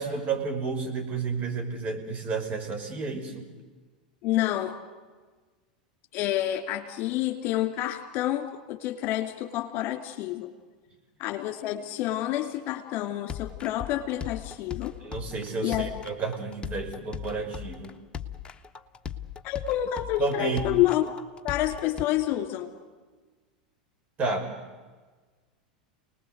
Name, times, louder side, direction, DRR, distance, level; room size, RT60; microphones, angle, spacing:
voice 1, 0.0-3.4 15.0-17.9 20.2-20.6 24.2-24.5, right 4 dB, 35° right, 3 dB, 5.8 m, -31 dB
voice 2, 4.2-4.8 6.1-10.5 11.2-14.9 15.6-15.9 16.2-16.3 19.4-21.1 21.4-22.7, left 14 dB, 50° left, 6 dB, 2.8 m, -28 dB
sound 1, 13.3-22.0, left 8 dB, 25° left, 1.4 m, -38 dB
29.0 x 20.0 x 8.0 m, 1.4 s
hypercardioid pair, 95°, 4 cm